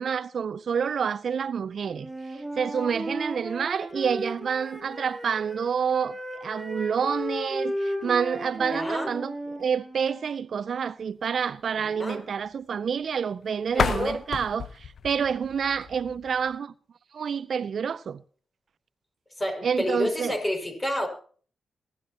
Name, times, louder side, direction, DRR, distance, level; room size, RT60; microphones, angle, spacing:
voice 1, 0.0-16.7 17.1-18.2 19.6-20.3, right 7 dB, 65° right, 0.5 m, -28 dB
Wind instrument woodwind instrument, 1.9-5.6 5.9-10.3, equal, 5° right, 6.1 m, -35 dB
voice 2, 8.7-9.1 11.9-12.2 13.7-14.2 19.4-21.1, left 1 dB, 20° left, 5.7 m, -29 dB
sound 1, 13.7-16.5, left 7 dB, 65° left, 0.9 m, -32 dB
24.0 x 12.0 x 2.9 m
supercardioid pair, 45°, 0 cm